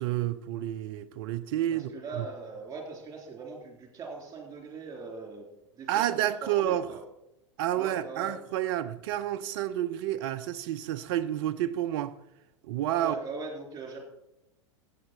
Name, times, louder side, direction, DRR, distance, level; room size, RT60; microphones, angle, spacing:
voice 1, 0.0-2.3 5.9-6.9 7.6-12.2 12.6-13.2, right 12 dB, 50° right, 0.6 m, -30 dB
voice 2, 1.7-5.5 5.8-7.0 7.7-8.3 13.0-14.0, right 4 dB, 20° right, 3.5 m, -41 dB
15.5 x 8.2 x 4.3 m
figure-of-eight pair, 90°, 16 cm